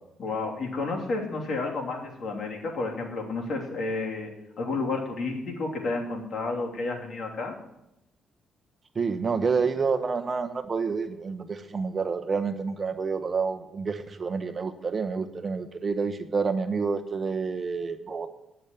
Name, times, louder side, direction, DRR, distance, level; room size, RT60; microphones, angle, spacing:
voice 1, 0.2-4.3 4.6-7.5, left 3 dB, 50° left, 0 dB, 3.0 m, -31 dB
voice 2, 8.9-18.3, right 5 dB, 35° right, 9 dB, 0.9 m, -28 dB
10.0 x 6.9 x 8.8 m, 0.85 s
cardioid pair, 90°, 0 cm